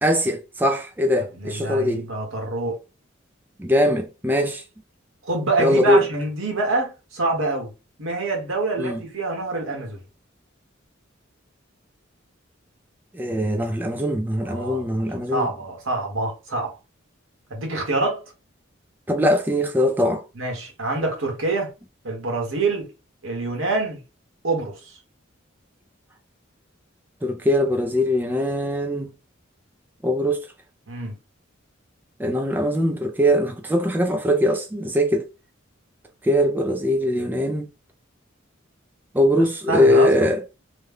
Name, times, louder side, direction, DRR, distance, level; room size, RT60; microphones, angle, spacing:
voice 1, 0.0-2.1 3.6-4.6 5.6-6.0 8.8-9.0 13.1-15.5 19.1-20.2 27.2-29.1 30.0-30.5 32.2-35.3 36.2-37.7 39.1-40.4, equal, 10° right, 0.3 m, -21 dB
voice 2, 1.3-2.8 5.2-7.7 8.0-10.0 14.5-14.8 15.3-16.7 17.5-18.2 20.4-21.8 22.0-22.9 23.2-24.0 24.4-24.7 30.9-31.1 39.7-40.1, right 2 dB, 85° right, 1.3 m, -26 dB
3.1 x 2.2 x 3.5 m
head